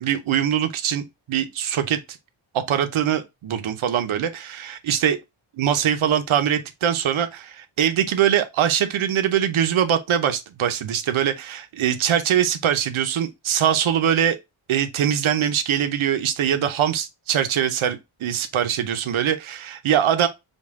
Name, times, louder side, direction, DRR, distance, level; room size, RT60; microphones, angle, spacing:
voice 1, 0.0-2.2 2.5-5.2 5.6-14.4 14.7-20.3, right 9 dB, 75° right, 0.7 m, -22 dB
5.3 x 2.3 x 3.5 m
wide cardioid pair, 170°, 49 cm